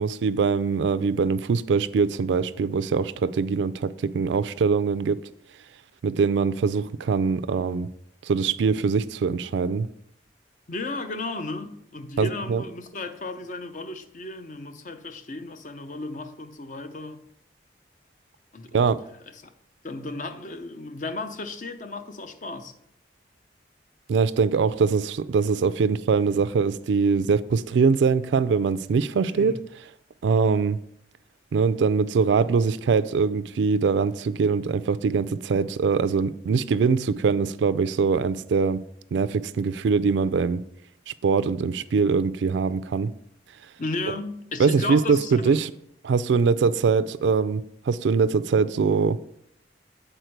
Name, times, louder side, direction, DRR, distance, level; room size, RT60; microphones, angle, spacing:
voice 1, 0.0-5.2 6.0-7.9 8.2-9.9 12.2-12.6 18.7-19.0 24.1-29.6 30.2-30.8 31.5-38.8 39.1-40.6 41.1-43.1 44.6-45.7 46.0-49.2, right 5 dB, 75° right, 0.3 m, -23 dB
voice 2, 10.7-17.2 18.5-18.8 19.3-19.4 19.8-22.7 29.3-29.7 43.8-45.6, left 2 dB, 45° left, 0.6 m, -34 dB
8.0 x 4.3 x 4.5 m
head